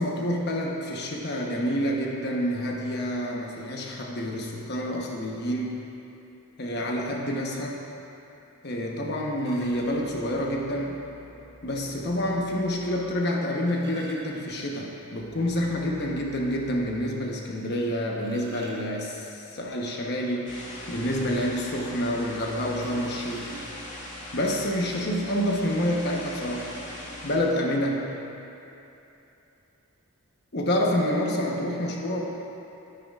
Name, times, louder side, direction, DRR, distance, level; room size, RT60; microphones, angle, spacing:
voice 1, 0.0-5.8 6.6-7.8 8.6-11.1 11.6-23.5 24.3-26.7 27.2-28.2 30.5-32.2, equal, 50° left, -1 dB, 1.1 m, -28 dB
sound 1, 9.4-10.0 11.4-11.5 13.3-15.1 15.4-15.5 15.9-16.0 16.5-16.6 17.8-19.4 22.7-24.1 24.9-25.0 25.4-25.6, right 3 dB, 50° right, 1.1 m, -47 dB
sound 2, 9.7-13.2 13.5-13.6 14.2-17.0, equal, 20° left, 2.2 m, -52 dB
sound 3, 20.5-27.4, left 1 dB, 80° left, 1.9 m, -41 dB
13.0 x 9.7 x 2.5 m, 2.9 s
head